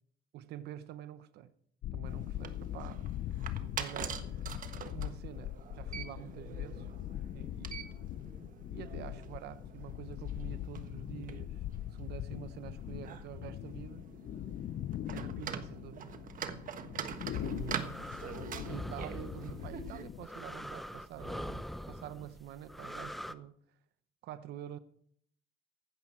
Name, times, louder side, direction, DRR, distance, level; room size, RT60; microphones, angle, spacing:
voice 1, 0.3-1.5 1.9-3.1 3.6-4.5 4.9-6.9 7.3-7.9 8.7-11.6 11.9-14.0 15.1-16.1 17.4-17.9 18.7-23.5 24.2-24.8, right 11 dB, 75° right, 1.0 m, -47 dB
sound 1, 1.8-20.3, left 13 dB, 55° left, 0.5 m, -41 dB
sound 2, 2.1-20.0, right 8 dB, 55° right, 1.4 m, -45 dB
sound 3, 17.3-23.3, equal, ahead, 0.7 m, -44 dB
15.5 x 12.0 x 4.5 m
cardioid pair, 110°, 17 cm